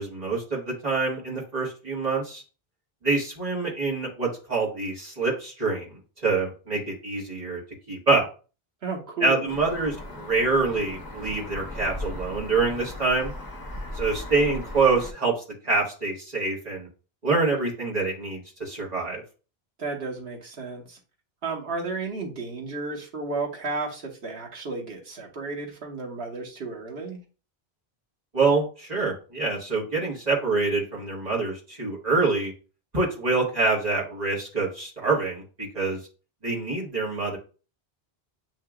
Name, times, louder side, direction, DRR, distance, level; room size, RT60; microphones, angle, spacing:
voice 1, 0.0-2.4 3.0-7.6 7.9-8.2 9.2-13.3 13.9-16.9 17.2-19.2 28.3-32.5 32.9-36.0 36.4-37.4, right 3 dB, 40° right, -4 dB, 1.6 m, -26 dB
voice 2, 8.8-9.5 19.8-21.0 21.4-27.2, right 3 dB, 85° right, -1 dB, 1.3 m, -33 dB
sound 1, 9.5-15.1, left 1 dB, 25° left, 0.7 m, -37 dB
7.7 x 2.8 x 2.3 m, 0.35 s
omnidirectional pair, 1.0 m